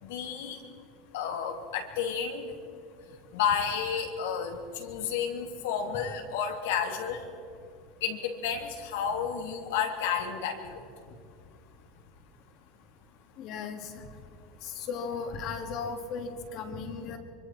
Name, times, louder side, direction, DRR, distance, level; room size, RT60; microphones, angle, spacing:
voice 1, 0.0-0.6 1.1-2.5 3.3-7.2 8.0-10.8, left 7 dB, 85° left, 2 dB, 3.2 m, -31 dB
voice 2, 13.4-13.8 14.6-17.2, left 5 dB, 50° left, 4 dB, 2.5 m, -36 dB
25.0 x 25.0 x 4.4 m, 2.4 s
supercardioid pair, 145°, 0 cm